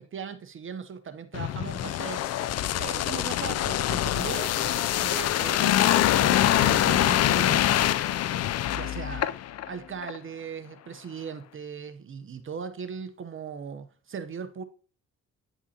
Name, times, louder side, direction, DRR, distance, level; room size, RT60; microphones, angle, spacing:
voice 1, 0.0-7.7 8.7-9.3 9.6-14.6, right 6 dB, 40° right, 0.8 m, -38 dB
sound 1, 1.3-9.7 10.0-10.2, left 12 dB, 55° left, 0.4 m, -24 dB
9.6 x 5.5 x 2.8 m
cardioid pair, 90°, 30 cm